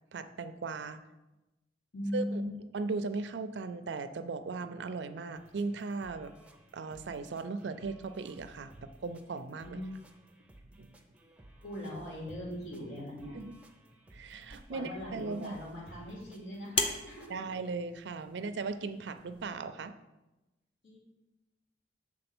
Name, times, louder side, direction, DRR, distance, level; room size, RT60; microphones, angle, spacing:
voice 1, 0.1-1.0 2.1-2.4 2.7-6.3 6.7-9.8 10.8-10.9 13.3-13.6 14.1-15.5 17.3-19.9, right 4 dB, 70° right, 10 dB, 0.4 m, -37 dB
voice 2, 1.9-2.5 9.6-9.9 11.6-13.4 14.7-17.5 20.8-21.0, equal, 65° left, -9 dB, 2.8 m, -40 dB
sound 1, 5.3-17.3, right 1 dB, 5° right, 0.6 m, -57 dB
sound 2, 14.4-19.4, left 3 dB, 30° left, 0.7 m, -40 dB
7.7 x 3.7 x 6.0 m, 1.0 s
head